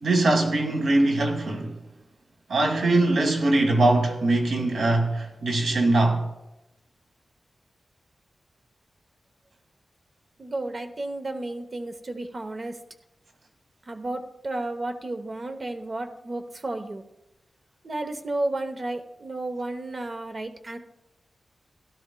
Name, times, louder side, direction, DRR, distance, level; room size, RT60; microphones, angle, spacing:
voice 1, 0.0-1.7 2.5-6.2, right 2 dB, 75° right, 1.7 m, -22 dB
voice 2, 10.4-12.8 13.9-17.0 17.8-20.8, right 2 dB, 35° right, 0.8 m, -32 dB
17.0 x 12.0 x 2.2 m
wide cardioid pair, 170°, 0 cm